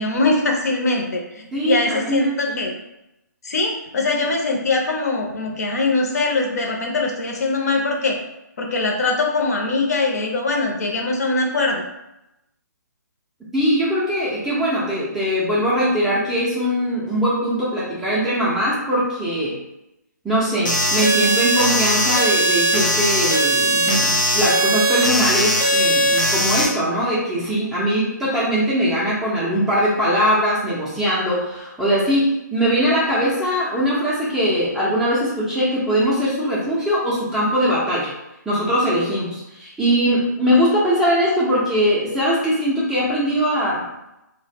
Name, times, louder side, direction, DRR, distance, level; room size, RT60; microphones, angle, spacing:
voice 1, 0.0-2.7 3.4-8.2 8.6-11.8, left 3 dB, 55° left, 1 dB, 0.5 m, -22 dB
voice 2, 1.5-2.6 13.5-19.6 20.2-38.1 38.5-43.8, equal, 5° right, -9 dB, 0.4 m, -21 dB
sound 1, 20.6-26.6, equal, 85° left, 0.9 m, -19 dB
2.0 x 2.0 x 3.3 m, 0.90 s
figure-of-eight pair, 145°, 10 cm